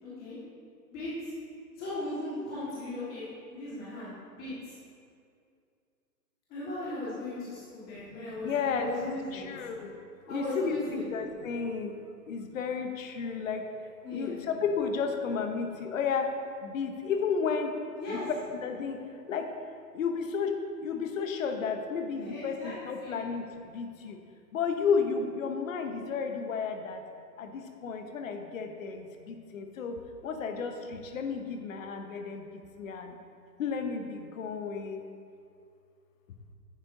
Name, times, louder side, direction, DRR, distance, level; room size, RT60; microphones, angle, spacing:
voice 1, 0.0-0.4 0.9-1.3 1.8-4.1 4.4-4.7 6.5-9.4 10.3-11.0 14.0-14.3 18.0-18.2 22.3-22.7 23.0-23.2, left 1 dB, 20° left, -11 dB, 1.7 m, -37 dB
voice 2, 8.4-11.9 12.3-16.3 16.6-17.8 18.1-18.2 18.6-19.5 19.9-24.2 24.5-27.0 27.4-33.1 33.6-35.0, left 5 dB, 55° left, 6 dB, 0.9 m, -33 dB
9.7 x 7.5 x 2.7 m, 2.4 s
hypercardioid pair, 150°, 49 cm